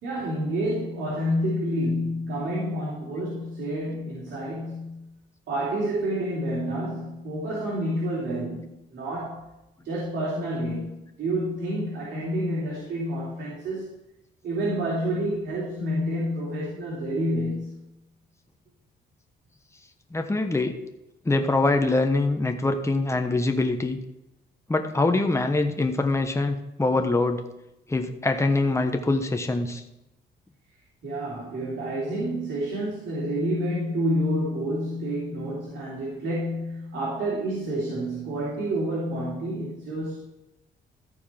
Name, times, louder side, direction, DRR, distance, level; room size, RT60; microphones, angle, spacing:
voice 1, 0.0-5.1 5.5-9.5 9.8-13.9 14.4-17.8 31.0-40.2, equal, 65° right, -6 dB, 3.3 m, -29 dB
voice 2, 20.1-20.8 21.2-24.0 24.7-27.4 27.9-29.8, left 2 dB, 15° left, 5 dB, 1.1 m, -24 dB
14.0 x 4.6 x 5.8 m, 0.90 s
cardioid pair, 90°, 20 cm